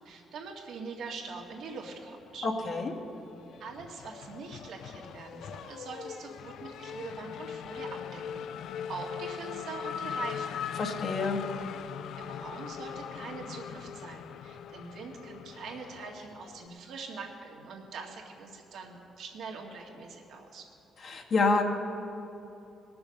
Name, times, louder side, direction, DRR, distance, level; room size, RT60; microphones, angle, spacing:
voice 1, 0.0-2.5 3.6-10.6 12.2-20.7, right 4 dB, 75° right, 0 dB, 2.0 m, -43 dB
Race car auto racing / Accelerating revving vroom, 1.7-2.7 3.0-16.7, left 8 dB, 75° left, 0.4 m, -40 dB
voice 2, 2.4-2.9 10.8-11.4 21.0-21.6, left 3 dB, 55° left, 0 dB, 1.7 m, -27 dB
19.5 x 6.9 x 6.6 m, 3.0 s
cardioid pair, 90°, 0 cm